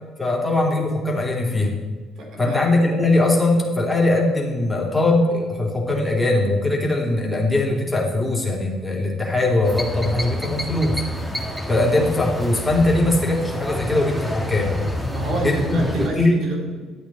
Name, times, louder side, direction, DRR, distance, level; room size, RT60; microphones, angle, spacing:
voice 1, 0.2-1.7 2.4-11.0 11.7-14.7 15.4-16.4, left 2 dB, 10° left, -2 dB, 2.8 m, -21 dB
voice 2, 2.2-2.6 15.1-16.8, right 3 dB, 65° right, 0 dB, 3.1 m, -29 dB
sound 1, 9.6-16.1, left 1 dB, 10° right, 1.8 m, -28 dB
11.5 x 8.3 x 4.4 m, 1.4 s
cardioid pair, 105°, 0 cm